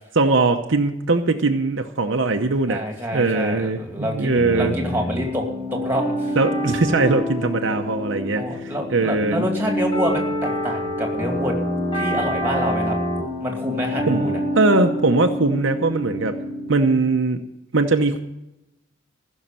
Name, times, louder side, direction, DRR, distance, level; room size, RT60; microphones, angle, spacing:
voice 1, 0.2-2.8 3.1-4.7 6.4-9.5 14.1-16.3 16.7-17.4 17.7-18.2, right 3 dB, 60° right, 5 dB, 0.8 m, -20 dB
voice 2, 2.7-5.4 5.7-6.4 8.4-11.6 11.9-13.0 13.4-14.4, equal, 10° right, 2 dB, 2.4 m, -27 dB
sound 1, 4.3-17.0, equal, 25° left, 6.8 m, -27 dB
15.5 x 6.5 x 9.0 m, 0.90 s
head